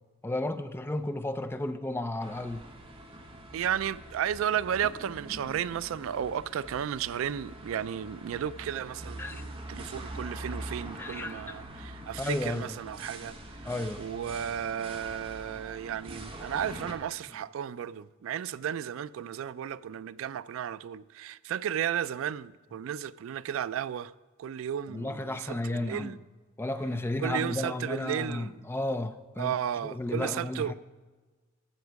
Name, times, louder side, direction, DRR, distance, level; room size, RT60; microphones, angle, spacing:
voice 1, 0.2-2.6 9.2-9.4 11.0-11.6 12.2-12.8 13.6-14.0 24.9-26.2 26.6-29.5 29.8-30.7, left 1 dB, 10° left, 0.4 m, -33 dB
sound 1, 2.2-16.9, right 1 dB, 25° right, 1.2 m, -44 dB
voice 2, 3.5-13.3 14.0-24.1 24.4-26.2 27.2-28.5 29.4-30.7, right 9 dB, 70° right, 0.3 m, -33 dB
13.0 x 7.2 x 4.7 m
head